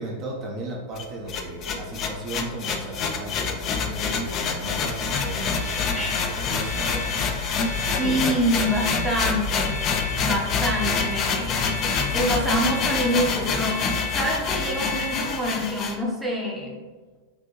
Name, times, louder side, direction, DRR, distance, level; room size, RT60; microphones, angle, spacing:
voice 1, 0.0-8.1, right 2 dB, 35° right, -2 dB, 0.7 m, -36 dB
sound 1, 1.0-16.0, left 5 dB, 35° left, 0.4 m, -27 dB
sound 2, 5.1-15.5, left 3 dB, 55° right, 1.2 m, -35 dB
voice 2, 5.9-6.4 8.0-9.7 10.2-11.6 12.1-13.8 14.1-16.8, equal, 5° right, -3 dB, 0.8 m, -26 dB
5.4 x 2.6 x 2.9 m, 1.3 s
figure-of-eight pair, 90°, 0 cm